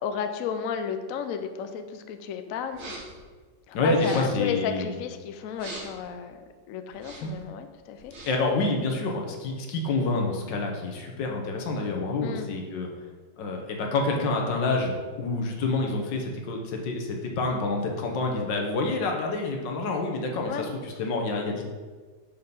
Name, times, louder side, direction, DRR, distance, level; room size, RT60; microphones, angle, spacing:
voice 1, 0.0-2.9 3.7-6.4 6.7-8.1 12.2-12.5 20.5-20.7, left 7 dB, 85° left, 8 dB, 0.7 m, -33 dB
sound 1, 2.7-3.2 3.9-4.4 5.5-6.1 6.9-7.4 7.9-8.5, right 2 dB, 65° right, 2.0 m, -42 dB
voice 2, 3.7-5.0 7.2-7.3 8.3-12.9 13.4-21.6, left 3 dB, 65° left, 1 dB, 1.6 m, -28 dB
6.7 x 4.4 x 5.3 m, 1.4 s
omnidirectional pair, 2.2 m